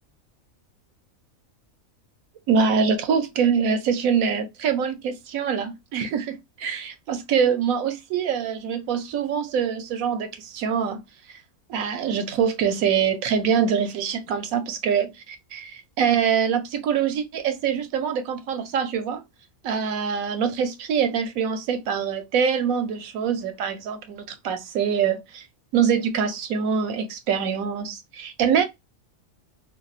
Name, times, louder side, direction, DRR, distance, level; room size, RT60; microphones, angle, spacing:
voice 1, 2.5-11.0 11.3-11.4 11.7-19.2 19.6-25.5 25.7-28.6, right 7 dB, 85° right, 1.1 m, -24 dB
3.4 x 2.3 x 2.4 m
omnidirectional pair, 1.4 m